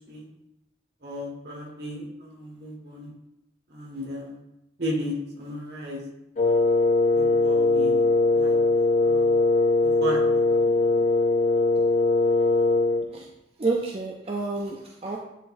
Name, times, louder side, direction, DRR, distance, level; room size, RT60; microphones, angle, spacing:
voice 1, 1.0-3.1 3.7-4.4 4.8-6.0 7.1-8.0 8.3-8.6 9.0-9.3 9.8-11.0, left 1 dB, 65° right, -2 dB, 1.6 m, -35 dB
Wind instrument woodwind instrument, 6.4-13.1, left 3 dB, 40° left, 0.4 m, -21 dB
voice 2, 13.6-15.2, right 3 dB, 30° right, 0 dB, 0.5 m, -29 dB
9.8 x 3.9 x 2.6 m, 0.88 s
head